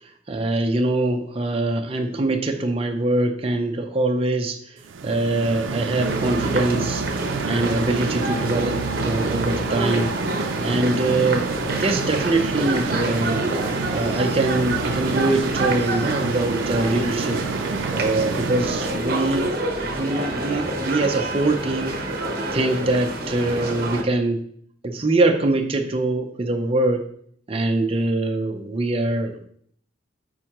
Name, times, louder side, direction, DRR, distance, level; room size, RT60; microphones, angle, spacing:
voice 1, 0.3-7.0 7.4-10.2 10.6-11.5 11.8-13.4 13.9-17.4 17.9-19.5 19.8-21.9 22.5-24.4 24.8-27.0 27.5-29.5, right 2 dB, 30° right, 3 dB, 0.6 m, -23 dB
sound 1, 4.8-19.4, right 4 dB, 85° right, 0.5 m, -29 dB
sound 2, 6.0-24.0, right 2 dB, 50° right, 0.9 m, -28 dB
9.3 x 4.4 x 3.0 m, 0.63 s
head